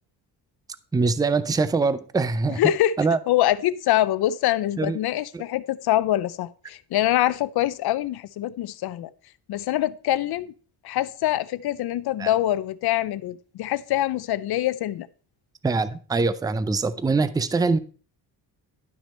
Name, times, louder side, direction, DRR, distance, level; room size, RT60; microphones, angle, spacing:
voice 1, 0.9-2.6 3.0-3.2 4.8-5.0 12.2-12.3 15.6-17.8, right 4 dB, 10° right, 0.5 m, -23 dB
voice 2, 2.6-3.0 3.3-9.1 9.5-10.5 10.8-15.1, left 13 dB, 70° left, 0.7 m, -24 dB
11.5 x 6.0 x 4.3 m
cardioid pair, 120°, 40 cm